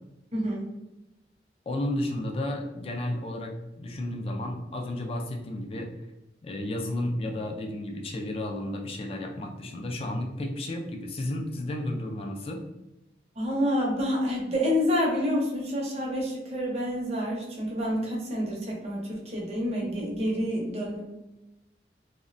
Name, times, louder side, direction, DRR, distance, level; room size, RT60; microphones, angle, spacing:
voice 1, 0.3-0.7 13.4-21.0, equal, 35° right, -2 dB, 0.6 m, -28 dB
voice 2, 1.7-5.9 6.4-12.6, left 1 dB, 30° left, 2 dB, 0.3 m, -32 dB
2.5 x 2.0 x 2.5 m, 0.95 s
head